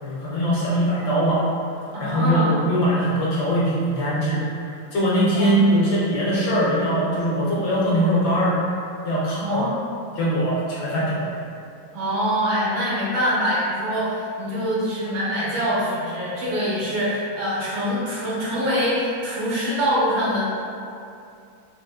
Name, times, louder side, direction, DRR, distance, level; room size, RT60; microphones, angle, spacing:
voice 1, 0.0-1.4 2.0-4.4 4.9-8.6 9.0-9.6 10.2-11.3, equal, 70° left, -7 dB, 1.1 m, -21 dB
voice 2, 1.9-2.5 5.3-5.6 9.4-9.8 11.9-20.4, equal, 80° right, -9 dB, 1.8 m, -24 dB
4.9 x 2.1 x 2.2 m, 2.5 s
omnidirectional pair, 2.1 m